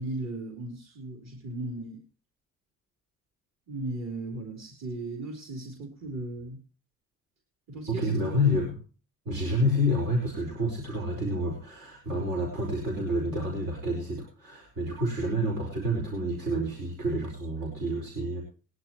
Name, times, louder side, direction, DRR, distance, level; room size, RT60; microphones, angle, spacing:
voice 1, 0.0-2.0 3.7-6.6 7.7-8.6, right 2 dB, 60° right, 1 dB, 4.0 m, -36 dB
voice 2, 7.9-8.8 9.2-18.4, equal, 80° right, -1 dB, 4.9 m, -29 dB
20.5 x 11.0 x 3.0 m, 0.36 s
cardioid pair, 90°, 30 cm